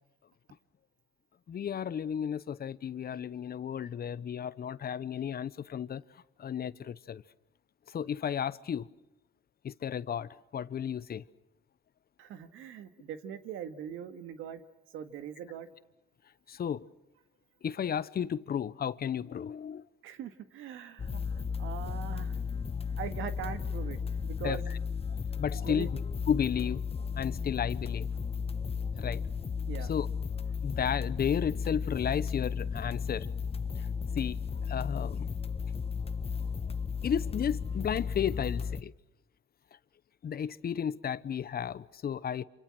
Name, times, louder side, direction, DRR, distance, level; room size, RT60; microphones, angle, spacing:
voice 1, 1.5-6.0 6.4-7.2 7.9-8.9 9.6-11.2 16.5-16.9 17.6-19.8 24.4-24.8 25.4-25.9 26.3-26.8 27.2-28.1 29.0-29.2 29.9-30.1 30.6-33.3 33.8-33.9 34.2-35.3 37.0-38.9 40.2-42.4, left 8 dB, 50° left, 1.0 m, -33 dB
voice 2, 12.2-14.6 14.9-15.7 20.0-21.2 21.6-22.4 23.0-24.7 25.5-25.9 29.7-29.9, right 8 dB, 90° right, 2.1 m, -41 dB
sound 1, 21.0-38.8, left 6 dB, 30° left, 1.1 m, -34 dB
28.0 x 27.5 x 6.3 m
cardioid pair, 90°, 20 cm